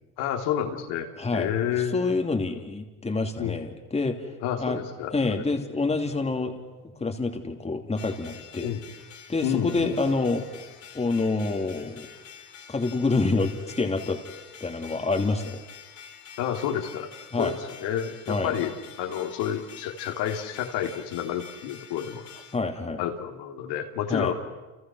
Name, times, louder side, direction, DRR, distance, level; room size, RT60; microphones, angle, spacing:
voice 1, 0.2-2.1 3.4-3.6 4.4-5.4 8.6-8.8 9.4-10.0 16.4-17.1 17.4-22.2 23.0-24.3, left 9 dB, 70° left, 3 dB, 3.3 m, -30 dB
voice 2, 1.2-4.3 4.6-4.8 5.1-6.5 7.0-8.7 9.3-10.4 10.9-12.1 12.7-14.2 14.6-15.6 17.3-17.5 18.3-18.5 22.5-23.0 24.1-24.3, left 3 dB, 15° left, 4 dB, 2.9 m, -27 dB
sound 1, 8.0-22.6, left 7 dB, 45° left, 3.6 m, -47 dB
30.0 x 28.5 x 6.3 m, 1.1 s
supercardioid pair, 105°, 42 cm